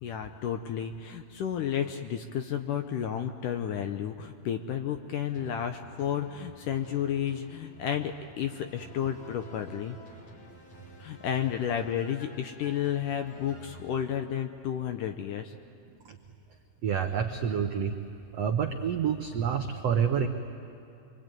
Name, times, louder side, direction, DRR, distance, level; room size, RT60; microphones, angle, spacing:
voice 1, 0.0-10.0 11.0-15.5, left 9 dB, 75° left, 6 dB, 2.0 m, -32 dB
sound 1, 5.3-14.7 15.2-15.3, equal, 40° left, 4.8 m, -52 dB
voice 2, 16.8-17.9 18.3-20.3, right 7 dB, 80° right, 4 dB, 1.4 m, -28 dB
27.5 x 23.5 x 9.1 m, 2.7 s
omnidirectional pair, 4.5 m